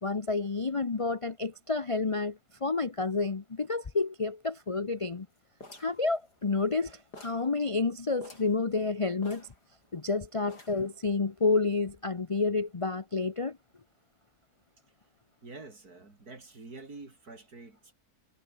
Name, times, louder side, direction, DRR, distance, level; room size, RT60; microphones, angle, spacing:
voice 1, 0.0-5.3 5.8-9.5 9.9-13.6, left 3 dB, 30° left, 0.5 m, -30 dB
sound 1, 5.6-6.8 7.1-7.5 7.8-7.9 8.2-8.6 9.2-10.1 10.5-10.9, left 2 dB, 75° left, 7.5 m, -50 dB
voice 2, 15.4-17.9, right 3 dB, 65° right, 4.6 m, -47 dB
omnidirectional pair, 1.8 m